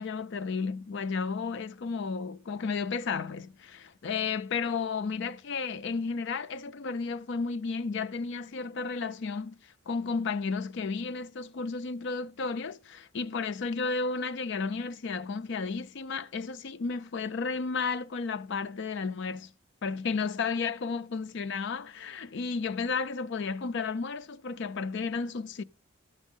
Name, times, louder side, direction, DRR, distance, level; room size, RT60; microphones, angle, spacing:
voice 1, 0.0-19.5 19.8-25.6, left 4 dB, 55° left, 0.4 m, -33 dB
12.5 x 6.2 x 3.7 m
head